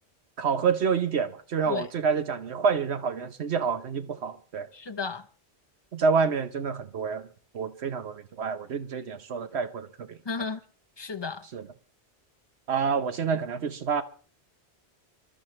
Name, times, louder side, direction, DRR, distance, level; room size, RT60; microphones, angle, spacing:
voice 1, 0.4-4.7 5.9-7.3 7.5-10.2 11.5-11.7 12.7-14.0, right 6 dB, 70° right, 1.1 m, -28 dB
voice 2, 4.7-5.3 10.3-10.6 11.0-11.4, left 5 dB, 25° left, 0.7 m, -33 dB
26.5 x 12.5 x 3.2 m
omnidirectional pair, 1.1 m